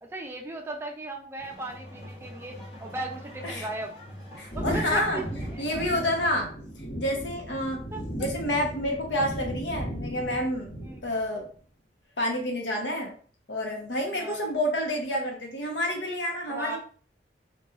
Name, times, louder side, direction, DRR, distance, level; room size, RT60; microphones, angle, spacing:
voice 1, 0.0-3.9 4.5-5.2 5.5-5.6 7.9-8.3 10.3-10.4 10.8-11.0 14.1-14.5 16.5-16.8, right 2 dB, 15° right, 2 dB, 0.4 m, -37 dB
sound 1, 1.4-6.4, equal, 35° left, 0.6 m, -44 dB
voice 2, 4.4-5.2 5.6-6.5 7.0-7.9 8.2-10.8 11.0-11.5 12.2-13.1 13.5-16.8, left 1 dB, 85° left, 1 dB, 0.8 m, -29 dB
sound 2, 4.5-11.3, right 1 dB, 55° left, 1.0 m, -36 dB
2.9 x 2.3 x 2.4 m, 0.44 s
head